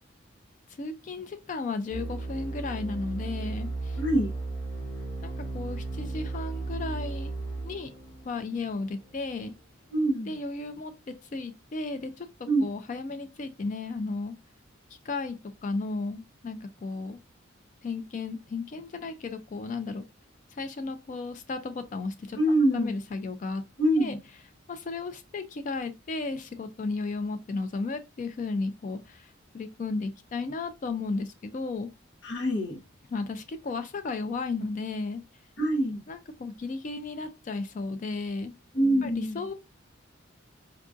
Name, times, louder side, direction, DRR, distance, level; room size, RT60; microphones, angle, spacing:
voice 1, 0.8-4.0 5.2-7.3 7.6-7.9 8.2-9.5 10.3-14.4 15.1-15.4 15.6-17.2 17.8-20.0 20.6-22.4 22.7-23.6 24.0-24.2 24.7-29.3 29.5-31.9 33.1-35.2 36.1-38.5 39.0-39.5, left 3 dB, 40° left, 0.3 m, -34 dB
sound 1, 1.9-9.4, right 3 dB, 85° left, 1.4 m, -35 dB
voice 2, 4.0-4.3 9.9-10.4 12.5-12.6 22.4-22.9 23.8-24.2 32.2-32.8 35.6-36.0 38.7-39.4, right 1 dB, 60° left, 0.8 m, -25 dB
4.5 x 2.4 x 2.5 m
head